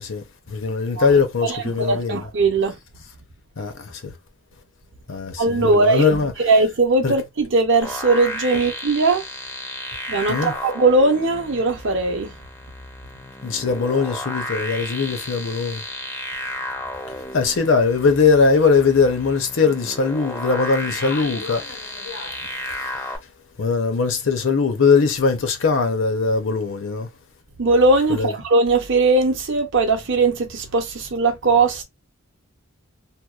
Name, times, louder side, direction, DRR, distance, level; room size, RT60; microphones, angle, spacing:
voice 1, 0.0-2.2 3.6-4.1 5.1-6.3 7.0-7.1 10.3-10.5 13.4-15.8 17.3-22.4 22.7-22.9 23.6-27.1 28.1-28.3, left 4 dB, 55° left, 0.6 m, -20 dB
voice 2, 1.5-2.7 5.4-6.0 6.4-9.2 10.1-12.4 27.6-31.8, right 3 dB, 55° right, 0.7 m, -19 dB
sound 1, 7.8-23.2, left 1 dB, 10° left, 0.5 m, -33 dB
2.9 x 2.2 x 2.3 m
head